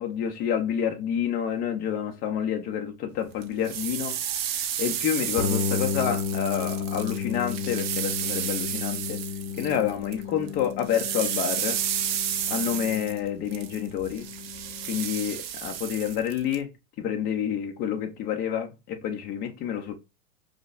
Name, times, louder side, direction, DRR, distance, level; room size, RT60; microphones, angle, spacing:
voice 1, 0.0-4.2 4.5-9.2 9.6-11.8 12.5-14.3 14.9-16.7 17.0-19.9, left 9 dB, 20° left, 0.6 m, -29 dB
sound 1, 3.4-10.2 10.5-16.6, right 10 dB, 45° right, 0.6 m, -32 dB
sound 2, 5.4-15.1, left 7 dB, 75° left, 0.8 m, -33 dB
4.9 x 2.2 x 2.4 m
hypercardioid pair, 140°, 43 cm